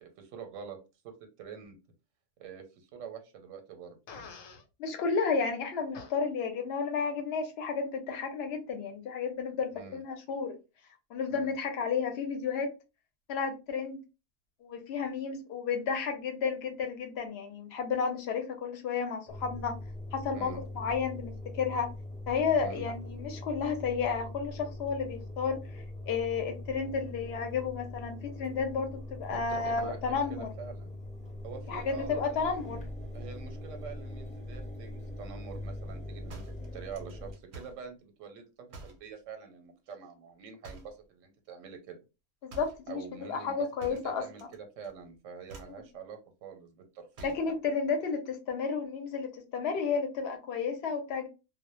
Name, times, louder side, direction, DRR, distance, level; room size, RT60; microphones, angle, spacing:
voice 1, 0.0-0.8 1.0-1.1 1.4-1.8 2.4-4.0 9.7-10.0 11.3-11.5 20.3-20.6 22.6-22.9 29.3-30.0 30.3-31.0 31.4-32.5 33.1-36.4 36.7-38.4 38.8-42.0 42.9-47.4, right 6 dB, 90° right, 1.0 m, -45 dB
Fart, 4.1-4.6 5.9-6.1, left 4 dB, 90° left, 1.0 m, -46 dB
voice 2, 4.8-10.5 11.1-12.7 13.3-14.0 14.6-19.7 20.1-21.9 22.3-30.5 31.7-32.9 42.4-44.3 47.2-51.3, left 5 dB, 65° left, 0.7 m, -32 dB
Engine, 19.3-37.3, left 1 dB, 10° left, 0.6 m, -42 dB
sound 1, 36.3-37.9 38.7-39.1 40.6-41.1 42.5-42.9 43.8-44.6 44.8-45.1 45.5-45.8 47.1-47.5, right 3 dB, 55° right, 0.6 m, -48 dB
2.1 x 2.0 x 2.9 m
omnidirectional pair, 1.3 m